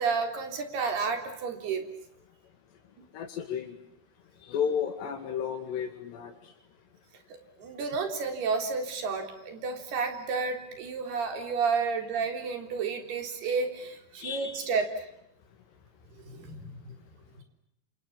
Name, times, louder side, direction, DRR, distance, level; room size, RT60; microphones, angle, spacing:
voice 1, 0.0-1.9 7.3-15.1 16.2-16.9, right 5 dB, 70° right, 5 dB, 5.6 m, -31 dB
voice 2, 3.1-3.8 4.4-6.3 14.2-14.7, left 7 dB, 85° left, 4 dB, 4.4 m, -32 dB
28.5 x 27.5 x 7.2 m, 0.75 s
omnidirectional pair, 4.8 m